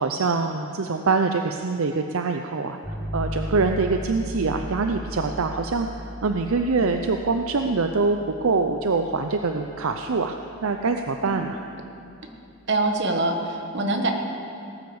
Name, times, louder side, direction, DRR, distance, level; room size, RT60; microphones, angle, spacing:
voice 1, 0.0-2.8 3.1-11.6, right 4 dB, 75° right, 5 dB, 0.6 m, -24 dB
sound 1, 2.8-12.7, equal, 10° left, 4.5 m, -37 dB
voice 2, 12.7-14.1, right 2 dB, 55° right, 3 dB, 1.5 m, -24 dB
18.5 x 9.4 x 7.1 m, 2.6 s
head